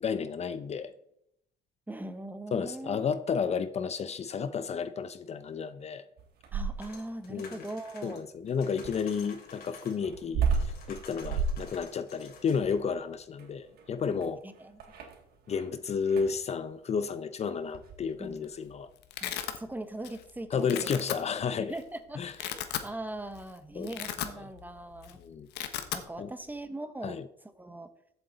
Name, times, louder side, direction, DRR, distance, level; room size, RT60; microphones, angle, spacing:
voice 1, 0.0-0.9 2.5-6.0 7.3-7.7 8.0-14.4 15.5-18.9 20.5-21.8 22.2-22.3 23.7-23.9 25.2-25.5 26.2-26.3 27.0-27.2, left 6 dB, 40° left, 0.7 m, -32 dB
voice 2, 1.9-3.1 6.5-8.2 14.4-14.8 18.2-18.5 19.2-20.9 21.7-25.2 25.9-27.2 27.6-27.9, right 1 dB, 10° right, 1.2 m, -41 dB
sound 1, 6.2-7.1 8.8-15.7 16.0-16.4 17.7-18.0, right 5 dB, 65° right, 3.4 m, -33 dB
sound 2, 6.8-10.2 10.5-12.7, left 5 dB, 65° left, 3.6 m, -51 dB
Domestic sounds home sounds, 18.1-18.5 18.7-19.6 20.0-20.3 20.6-21.2 21.8-21.9 22.2-22.9 23.3-23.4 23.8-24.7 24.9-25.1 25.4-26.0, left 11 dB, 80° left, 1.3 m, -35 dB
14.5 x 8.0 x 4.1 m
cardioid pair, 110°, 17 cm